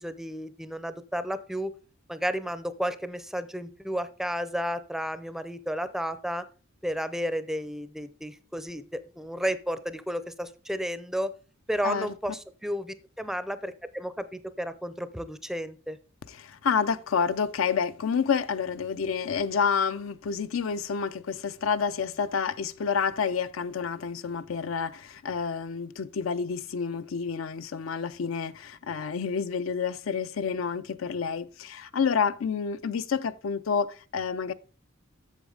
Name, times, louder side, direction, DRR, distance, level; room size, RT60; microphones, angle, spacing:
voice 1, 0.0-1.7 2.1-6.5 6.8-11.3 11.7-16.0, equal, ahead, 0.4 m, -32 dB
voice 2, 16.3-34.5, left 6 dB, 75° left, 0.5 m, -29 dB
8.2 x 7.1 x 3.8 m
head